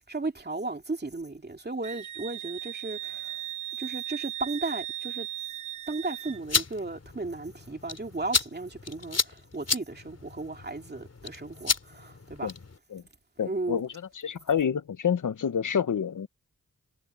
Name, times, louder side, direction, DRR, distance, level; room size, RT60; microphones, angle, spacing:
voice 1, 0.1-3.4 3.8-5.3 5.9-12.5 13.4-13.8, right 3 dB, 30° right, 2.7 m, -35 dB
Wind instrument woodwind instrument, 1.8-6.4, right 13 dB, 75° right, 0.5 m, -37 dB
sound 1, 6.3-12.8, left 4 dB, 55° left, 3.3 m, -33 dB
voice 2, 13.4-13.9 14.2-16.3, left 7 dB, 80° left, 1.2 m, -28 dB
cardioid pair, 45°, 31 cm